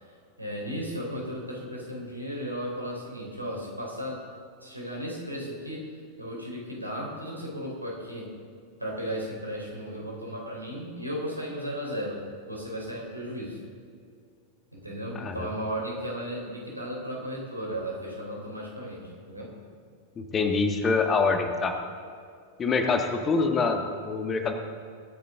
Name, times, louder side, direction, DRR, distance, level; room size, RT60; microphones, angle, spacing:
voice 1, 0.4-4.2 4.6-5.9 6.2-8.3 8.8-12.2 12.5-13.6 14.7-19.5, equal, 85° right, -2 dB, 3.9 m, -35 dB
voice 2, 15.1-15.5 20.2-21.8 22.6-24.5, left 4 dB, 25° left, 5 dB, 1.4 m, -25 dB
23.0 x 10.5 x 3.7 m, 2.3 s
figure-of-eight pair, 90°, 0 cm